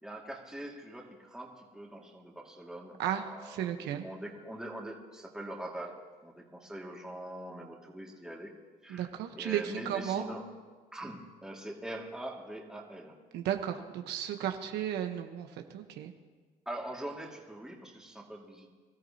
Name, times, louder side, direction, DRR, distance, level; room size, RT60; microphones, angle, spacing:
voice 1, 0.0-8.5 8.8-10.5 10.9-13.2 16.7-18.7, right 1 dB, 5° right, -1 dB, 2.2 m, -43 dB
voice 2, 3.0-4.0 8.9-10.2 13.3-15.5 15.7-16.1, right 10 dB, 80° right, 5 dB, 1.1 m, -34 dB
24.5 x 13.5 x 2.9 m, 1.4 s
cardioid pair, 110°, 17 cm